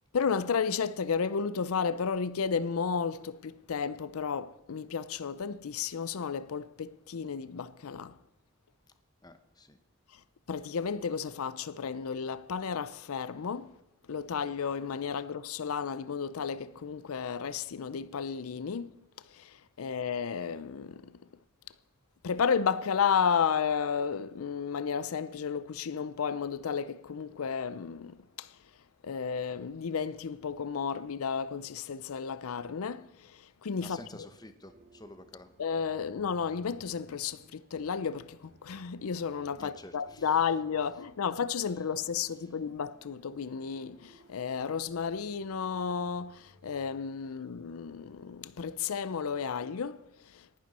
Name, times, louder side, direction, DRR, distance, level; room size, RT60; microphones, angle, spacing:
voice 1, 0.1-8.2 10.5-13.7 14.1-18.9 19.3-21.1 22.2-28.5 29.0-34.0 35.6-50.6, left 6 dB, 90° left, 0.5 m, -32 dB
voice 2, 9.2-9.8 33.8-35.5 39.6-40.6 41.6-41.8, left 2 dB, 20° left, 1.0 m, -50 dB
sound 1, 34.6-46.9, right 1 dB, 40° right, 1.9 m, -62 dB
18.5 x 11.5 x 4.2 m
head